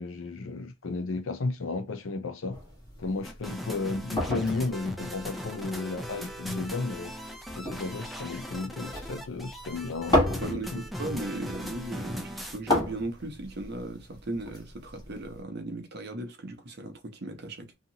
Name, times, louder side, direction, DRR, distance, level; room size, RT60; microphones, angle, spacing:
voice 1, 0.0-2.6 3.0-7.1 7.5-10.8, left 3 dB, 85° left, 0.5 m, -33 dB
sound 1, 2.5-15.4, left 1 dB, 20° left, 1.2 m, -34 dB
sound 2, 3.2-12.8, equal, ahead, 0.4 m, -39 dB
voice 2, 10.4-17.7, right 2 dB, 60° right, 0.8 m, -37 dB
2.8 x 2.4 x 2.7 m
head